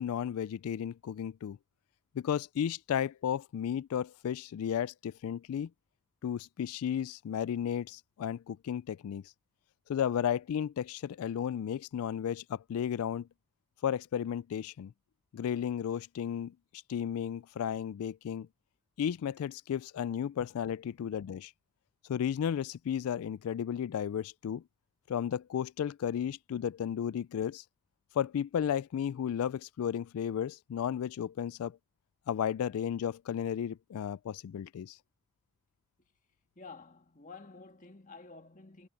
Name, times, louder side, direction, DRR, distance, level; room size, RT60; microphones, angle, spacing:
voice 1, 0.0-1.6 2.1-5.7 6.2-9.2 9.9-13.3 13.8-14.9 15.3-16.5 16.9-18.5 19.0-21.5 22.1-24.6 25.1-27.6 28.1-31.8 32.3-35.0, left 8 dB, 75° left, 0.3 m, -33 dB
voice 2, 36.6-38.9, left 4 dB, 35° left, 1.9 m, -51 dB
head